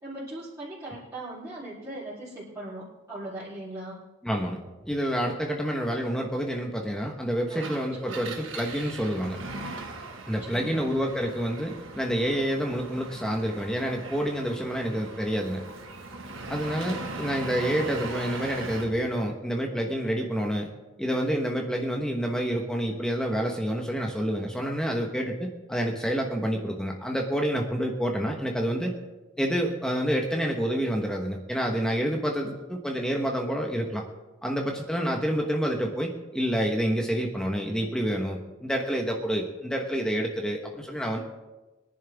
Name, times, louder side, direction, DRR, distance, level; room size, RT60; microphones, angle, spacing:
voice 1, 0.0-4.0 5.3-5.4 7.5-7.7 8.0-8.4 10.4-10.9, right 1 dB, 15° right, -12 dB, 3.6 m, -39 dB
voice 2, 4.2-9.4 10.3-15.6 16.5-20.7 21.0-28.9 29.4-34.0 34.4-41.2, equal, 5° left, 1 dB, 1.2 m, -28 dB
Engine, 7.5-19.0, right 2 dB, 70° right, 1.8 m, -39 dB
22.5 x 11.0 x 3.5 m, 1.1 s
head